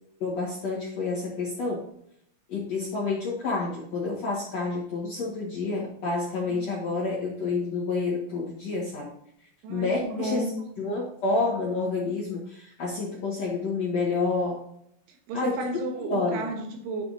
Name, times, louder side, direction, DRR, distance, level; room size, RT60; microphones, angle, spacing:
voice 1, 0.2-1.9 2.5-9.1 9.7-10.4 10.8-14.6 15.3-15.8 16.1-16.5, left 3 dB, 60° left, -6 dB, 1.8 m, -29 dB
voice 2, 9.6-10.5 15.1-17.1, right 2 dB, 90° right, 3 dB, 3.7 m, -33 dB
11.5 x 5.6 x 2.7 m, 0.72 s
omnidirectional pair, 5.3 m